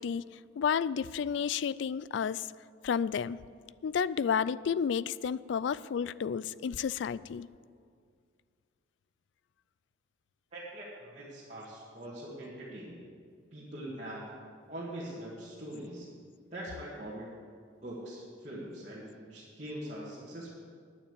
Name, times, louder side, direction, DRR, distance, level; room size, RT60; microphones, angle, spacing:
voice 1, 0.0-2.5 2.8-3.4 3.8-7.5, left 7 dB, 70° left, 18 dB, 0.3 m, -31 dB
voice 2, 10.5-13.0 13.5-14.3 14.7-16.1 16.5-17.3 17.8-20.5, right 1 dB, 35° right, -8 dB, 2.0 m, -42 dB
9.5 x 8.8 x 8.4 m, 2.1 s
head